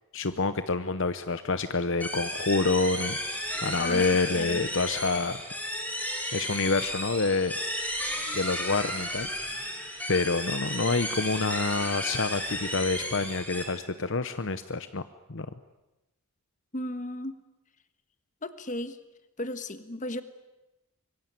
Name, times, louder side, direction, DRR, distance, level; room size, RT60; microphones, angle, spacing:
voice 1, 0.1-3.2 3.6-5.4 6.3-7.5 8.3-9.3 10.1-15.0 15.3-15.5, left 3 dB, 55° left, 11 dB, 0.9 m, -27 dB
sound 1, 2.0-13.6, equal, 5° left, 5.6 m, -33 dB
voice 2, 16.7-17.4 18.4-19.0 19.4-20.2, left 1 dB, 35° left, 11 dB, 1.5 m, -35 dB
25.0 x 22.5 x 9.0 m, 1.0 s
head